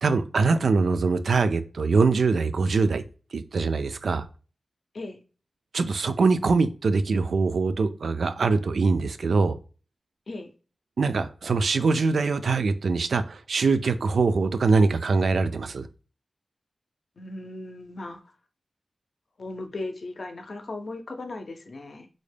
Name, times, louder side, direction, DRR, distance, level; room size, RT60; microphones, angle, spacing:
voice 1, 0.0-3.0 3.3-4.3 5.7-9.6 11.0-15.8, right 4 dB, 80° right, 10 dB, 0.3 m, -23 dB
voice 2, 17.2-18.3 19.4-22.1, left 2 dB, 55° left, 6 dB, 0.5 m, -37 dB
3.8 x 2.1 x 3.3 m, 0.35 s
wide cardioid pair, 105°, 0 cm